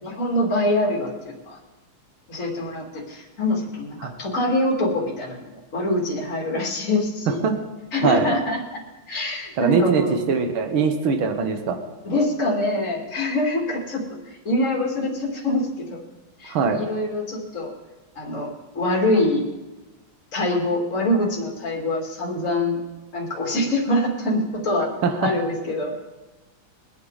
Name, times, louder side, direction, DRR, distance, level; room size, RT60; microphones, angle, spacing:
voice 1, 0.0-1.6 2.3-5.4 5.7-7.4 7.9-8.6 9.1-10.1 12.0-16.0 16.4-17.7 18.2-18.5 18.7-19.4 20.3-22.8 23.1-24.9 25.2-25.9, left 1 dB, 40° left, -3 dB, 2.9 m, -24 dB
voice 2, 8.0-8.3 9.6-11.8 16.5-16.8 25.0-25.3, right 5 dB, 75° right, 6 dB, 2.0 m, -22 dB
23.5 x 9.5 x 4.0 m, 1.1 s
omnidirectional pair, 2.3 m